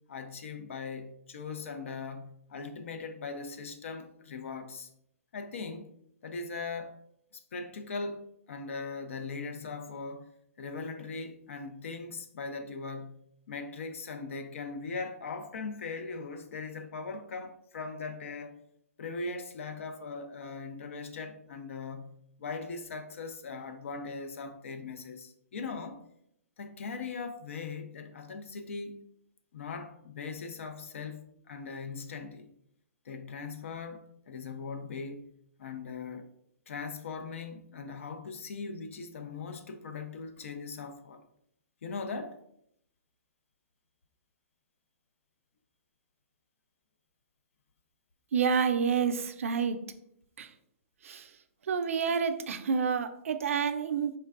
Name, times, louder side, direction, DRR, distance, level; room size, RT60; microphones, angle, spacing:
voice 1, 0.1-4.9 5.3-5.9 6.2-7.0 7.3-10.3 10.6-13.2 13.5-18.5 19.0-26.0 26.6-29.0 29.5-32.5 33.1-35.3 35.6-36.3 36.7-41.2 41.8-42.4, left 4 dB, 55° left, 0.4 m, -40 dB
voice 2, 48.3-49.8 50.4-50.5 51.0-51.3 51.7-54.1, right 6 dB, 60° right, 0.4 m, -28 dB
4.4 x 3.2 x 2.4 m
hypercardioid pair, 175°, 8 cm